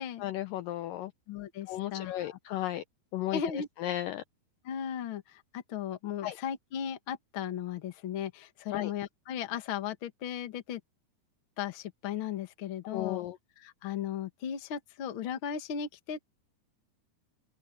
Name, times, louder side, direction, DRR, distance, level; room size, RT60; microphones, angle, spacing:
voice 1, 0.2-1.1 1.7-2.8 3.1-4.2 6.2-6.4 8.7-8.9 12.8-13.4, left 13 dB, 90° left, 1.9 m, -34 dB
voice 2, 1.3-2.4 3.3-3.7 4.6-10.8 11.6-13.3 13.6-16.2, left 8 dB, 60° left, 1.3 m, -36 dB
open air
omnidirectional pair, 4.8 m